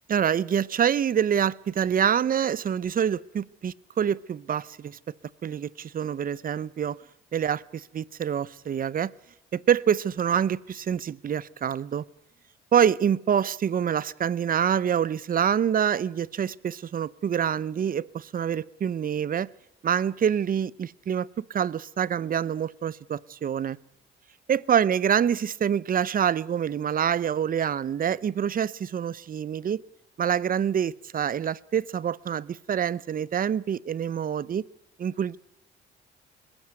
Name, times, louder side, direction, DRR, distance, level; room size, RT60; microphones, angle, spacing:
voice 1, 0.1-5.0 5.4-7.0 7.3-9.1 9.5-12.0 12.7-19.5 19.8-23.8 24.5-29.8 30.2-34.6 35.0-35.4, right 8 dB, 45° right, 0.7 m, -26 dB
20.5 x 15.0 x 9.4 m
cardioid pair, 90°, 20 cm